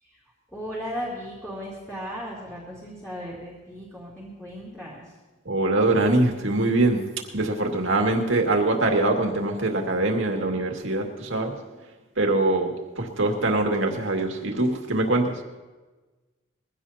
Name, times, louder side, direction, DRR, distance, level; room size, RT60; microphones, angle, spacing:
voice 1, 0.5-5.0, equal, 5° left, -7 dB, 2.9 m, -36 dB
voice 2, 5.5-11.5 12.2-15.3, right 2 dB, 70° right, 2 dB, 2.1 m, -23 dB
22.0 x 16.5 x 2.8 m, 1.2 s
head